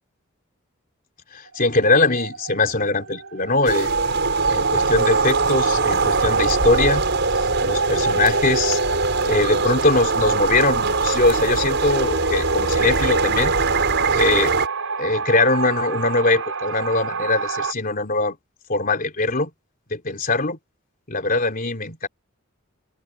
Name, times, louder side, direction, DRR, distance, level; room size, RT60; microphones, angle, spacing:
voice 1, 1.3-3.9 4.5-7.1 7.6-8.8 9.3-13.5 14.1-14.5 15.0-18.4 18.7-19.5 19.9-20.6 21.1-22.1, left 3 dB, 45° left, 3.5 m, -21 dB
sound 1, 1.5-17.7, right 4 dB, 75° right, 5.6 m, -30 dB
sound 2, 3.7-14.7, right 4 dB, 60° right, 5.9 m, -21 dB
open air
head